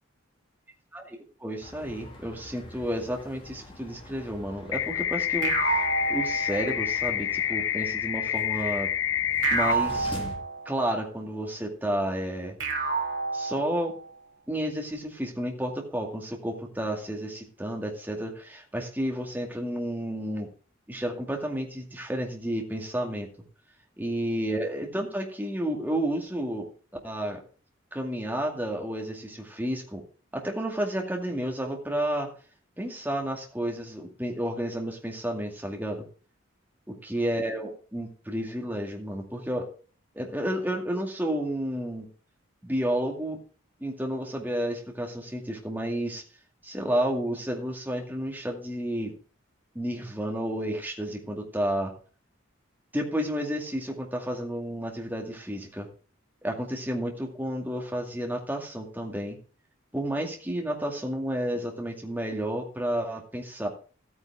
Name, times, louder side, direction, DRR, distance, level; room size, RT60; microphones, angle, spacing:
voice 1, 0.9-5.8 6.1-8.9 9.5-10.2 10.7-12.6 13.3-13.9 14.5-20.5 20.9-23.3 24.0-26.7 27.0-27.4 27.9-30.0 30.3-32.3 32.8-36.1 36.9-39.7 40.1-42.1 42.6-43.4 43.8-46.2 46.6-49.1 49.7-51.9 52.9-55.9 56.4-59.4 59.9-63.7, right 1 dB, 10° right, 1 dB, 2.2 m, -31 dB
sound 1, 1.6-10.4, left 1 dB, 25° left, 2.9 m, -45 dB
sound 2, 4.7-9.7, left 11 dB, 65° left, 0.5 m, -28 dB
sound 3, 5.4-7.1 9.4-11.0 12.6-14.1, right 4 dB, 60° right, 3.1 m, -29 dB
13.5 x 9.4 x 3.6 m, 0.39 s
head